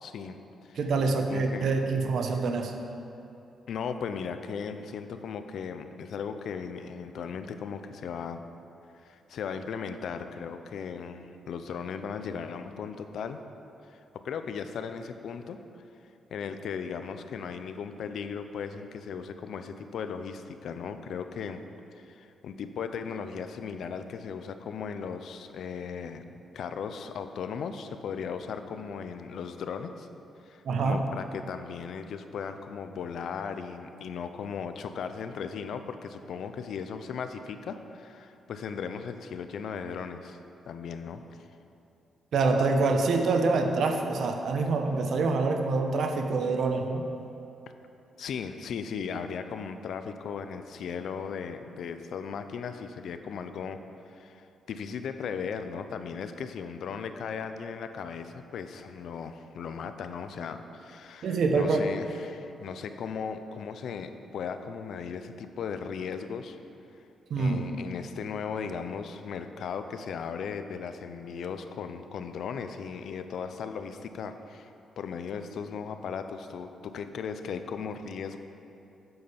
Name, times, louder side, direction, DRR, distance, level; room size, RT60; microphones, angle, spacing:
voice 1, 0.0-0.9 1.3-1.8 3.7-8.5 8.9-13.4 13.9-15.6 16.3-21.6 21.9-30.1 30.4-40.4 40.7-41.5 48.2-53.8 54.1-66.6 67.4-78.4, left 6 dB, 70° left, 9 dB, 0.7 m, -37 dB
voice 2, 0.8-2.7 30.7-31.0 42.3-47.0 61.2-61.8 67.3-67.6, right 3 dB, 65° right, 5 dB, 1.1 m, -26 dB
9.7 x 8.0 x 7.0 m, 2.8 s
cardioid pair, 125°, 0 cm